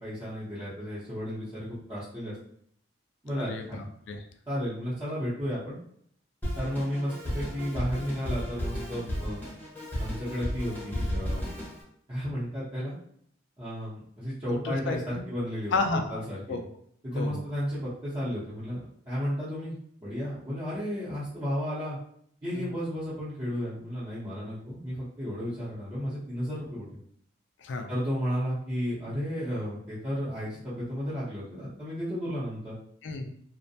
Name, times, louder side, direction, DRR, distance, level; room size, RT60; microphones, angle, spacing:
voice 1, 0.0-2.3 3.2-3.8 4.5-5.8 6.5-9.4 10.0-11.6 12.1-13.0 13.6-15.7 16.1-16.6 17.0-19.7 20.0-22.0 22.4-26.8 27.9-32.8, equal, 25° right, -13 dB, 0.7 m, -33 dB
voice 2, 3.4-4.2 14.5-15.2 15.7-16.2 16.5-16.6 17.2-17.4 22.5-22.7 27.6-27.9 33.0-33.3, left 3 dB, 65° left, 5 dB, 0.4 m, -32 dB
Drum kit, 6.4-11.8, equal, 10° left, 0.7 m, -33 dB
2.5 x 2.1 x 2.6 m, 0.65 s
head